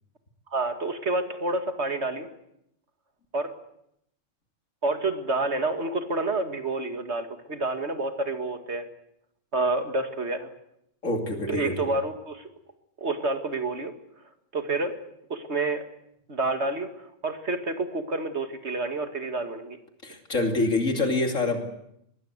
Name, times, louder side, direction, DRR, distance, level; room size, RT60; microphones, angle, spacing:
voice 1, 0.5-2.3 3.3-3.5 4.8-8.9 9.5-10.5 11.5-12.4 13.0-13.9 14.5-15.0 15.3-15.8 16.3-19.8, right 2 dB, 60° right, 7 dB, 2.4 m, -28 dB
voice 2, 11.0-11.9 20.0-21.6, left 2 dB, 90° left, 4 dB, 3.2 m, -26 dB
23.0 x 21.0 x 8.2 m, 0.77 s
omnidirectional pair, 1.3 m